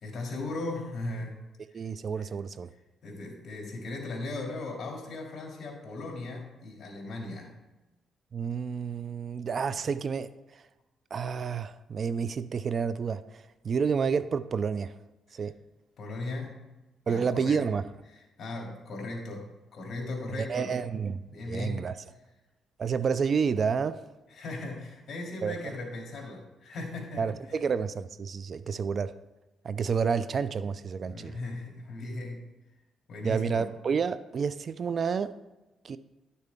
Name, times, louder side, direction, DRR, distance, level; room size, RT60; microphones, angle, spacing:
voice 1, 0.0-1.4 1.7-1.8 2.1-2.3 3.0-7.5 15.3-15.4 16.0-16.6 17.1-17.6 18.1-19.5 19.7-20.7 21.3-21.9 24.3-27.6 31.0-32.4 33.1-33.6, left 2 dB, 55° left, 0 dB, 2.6 m, -37 dB
voice 2, 1.7-2.7 8.3-10.6 11.1-15.0 15.3-15.5 17.1-17.8 20.5-21.2 21.5-21.9 22.8-24.0 25.4-25.5 27.2-29.2 29.6-31.4 33.2-35.3 35.8-36.0, right 6 dB, 45° right, 14 dB, 0.4 m, -29 dB
11.0 x 6.7 x 3.6 m, 1.0 s
cardioid pair, 90°, 0 cm